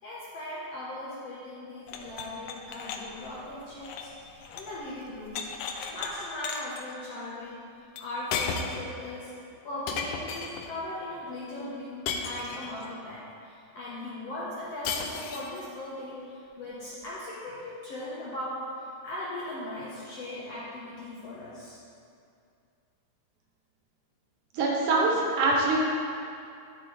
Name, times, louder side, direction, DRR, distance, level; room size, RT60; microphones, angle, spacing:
voice 1, 0.0-7.7 8.0-9.3 9.6-18.7 19.0-21.8, left 1 dB, 65° left, -8 dB, 1.7 m, -39 dB
sound 1, 1.9-4.8 5.0-6.1 6.4-6.8 8.0-8.1 8.3-8.9 9.9-10.7 12.1-12.9 14.8-15.6, left 5 dB, 80° left, 2.0 m, -35 dB
voice 2, 24.5-25.8, right 3 dB, 70° right, -2 dB, 2.2 m, -24 dB
10.5 x 6.2 x 3.3 m, 2.4 s
omnidirectional pair, 4.0 m